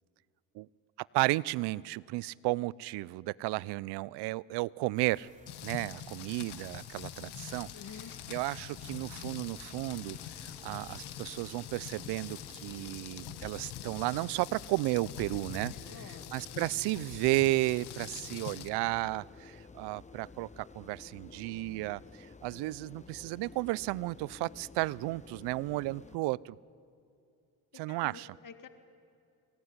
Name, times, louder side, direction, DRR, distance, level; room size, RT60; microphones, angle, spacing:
voice 1, 1.0-5.3 5.6-7.7 8.3-10.2 10.4-15.7 16.3-22.0 22.4-26.6 27.8-28.3, right 20 dB, 85° right, 23 dB, 0.5 m, -33 dB
sound 1, 4.9-12.8, right 2 dB, 20° right, 3.2 m, -60 dB
Rain, 5.5-18.7, left 11 dB, 75° left, 1.6 m, -45 dB
sound 2, 7.4-26.2, left 4 dB, 20° left, 1.0 m, -53 dB
voice 2, 7.7-8.1 15.7-16.7 27.7-28.7, left 6 dB, 55° left, 7 dB, 1.9 m, -50 dB
27.5 x 21.0 x 9.7 m, 2.5 s
supercardioid pair, 75°, 39 cm